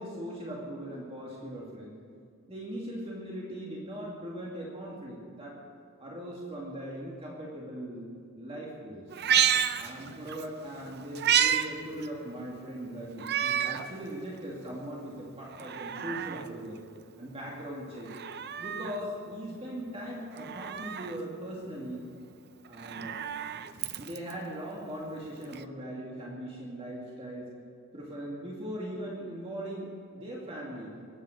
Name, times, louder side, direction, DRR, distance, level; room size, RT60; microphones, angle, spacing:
voice 1, 0.0-2.0 2.5-5.6 6.0-9.0 9.7-16.8 17.2-18.1 18.6-22.0 22.7-23.2 24.0-27.5 27.9-30.9, right 1 dB, 30° right, -4 dB, 2.3 m, -39 dB
Meow, 9.1-10.5 10.8-11.7 12.0-12.1 13.2-13.9 14.4-14.5 15.5-16.5 18.0-19.0 20.4-21.2 22.7-24.3 25.5-25.6, right 9 dB, 55° right, 0.6 m, -29 dB
22.5 x 9.6 x 6.5 m, 2.3 s
head